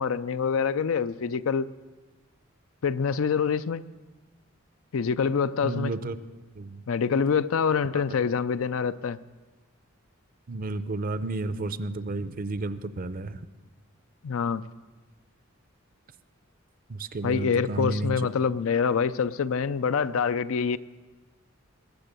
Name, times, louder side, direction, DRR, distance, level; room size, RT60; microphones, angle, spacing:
voice 1, 0.0-1.7 2.8-3.8 4.9-5.9 6.9-9.2 14.2-14.6 17.2-20.8, left 6 dB, 70° left, 14 dB, 0.5 m, -26 dB
voice 2, 5.6-6.2 6.5-6.8 7.9-8.4 10.5-13.4 16.9-18.3, right 2 dB, 45° right, 13 dB, 0.6 m, -32 dB
21.0 x 7.1 x 6.8 m, 1.3 s
head